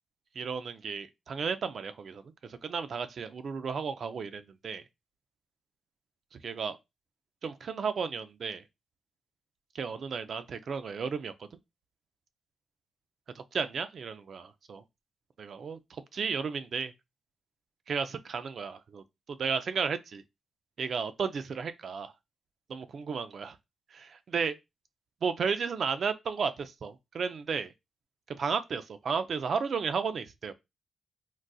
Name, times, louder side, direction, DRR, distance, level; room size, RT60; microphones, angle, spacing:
voice 1, 0.4-4.8 6.4-6.8 7.4-8.6 9.7-11.3 13.4-14.8 15.4-16.9 17.9-20.2 20.8-22.1 22.7-23.6 23.9-24.6 25.2-27.7 28.4-30.5, right 5 dB, 60° right, 0.4 m, -33 dB
3.9 x 2.4 x 2.3 m
cardioid pair, 85°, 0 cm